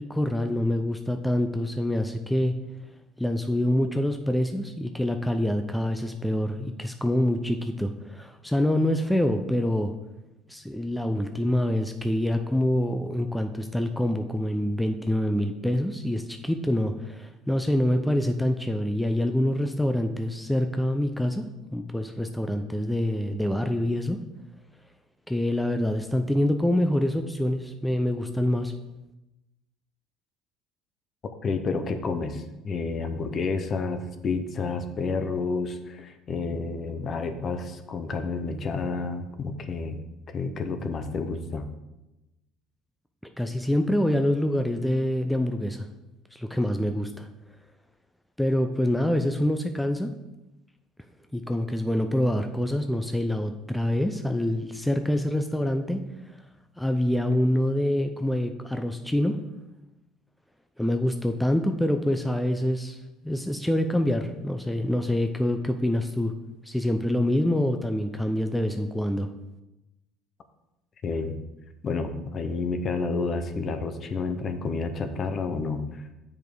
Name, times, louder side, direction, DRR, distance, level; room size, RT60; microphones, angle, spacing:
voice 1, 0.0-2.5 3.2-9.9 10.5-21.5 21.7-24.2 25.3-28.7 43.4-45.9 46.3-47.3 48.4-50.1 51.3-56.4 56.8-59.4 60.8-63.0 63.2-66.3 66.6-69.3, left 1 dB, 5° left, 6 dB, 0.5 m, -26 dB
voice 2, 31.4-41.7 71.0-71.4 71.8-76.1, left 4 dB, 40° left, 9 dB, 0.8 m, -30 dB
7.3 x 5.0 x 4.7 m, 0.98 s
cardioid pair, 110°, 0 cm